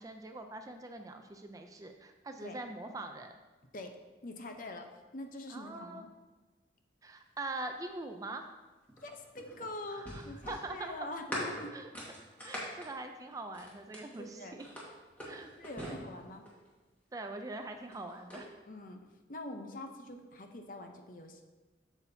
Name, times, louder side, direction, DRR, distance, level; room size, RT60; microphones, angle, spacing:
voice 1, 0.0-3.4 5.5-6.0 7.0-8.5 9.9-10.9 11.7-11.9 12.4-14.7 15.2-15.5 15.8-16.0 17.1-18.5, right 2 dB, 20° right, 6 dB, 0.3 m, -43 dB
voice 2, 4.2-4.9 5.1-6.1 9.0-11.8 14.2-14.6 15.4-16.4 18.7-19.0 19.3-21.4, left 2 dB, 45° left, 5 dB, 0.7 m, -44 dB
sound 1, 8.9-14.2 14.6-16.7 17.7-18.4, equal, 10° left, 1.6 m, -43 dB
8.2 x 7.1 x 2.7 m, 1.2 s
head